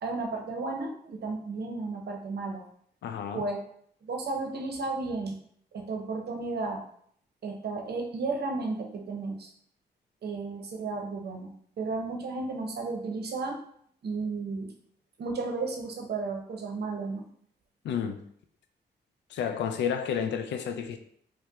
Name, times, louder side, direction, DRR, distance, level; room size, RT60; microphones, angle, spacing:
voice 1, 0.0-2.6 3.3-3.6 4.0-5.4 5.7-6.8 7.4-9.5 10.2-13.6 14.0-14.7 15.2-17.2, right 3 dB, 65° right, 2 dB, 0.7 m, -33 dB
voice 2, 3.0-3.5 17.8-18.2 19.3-21.0, left 7 dB, 80° left, 7 dB, 0.4 m, -31 dB
4.5 x 2.1 x 2.3 m, 0.65 s
supercardioid pair, 55°, 18 cm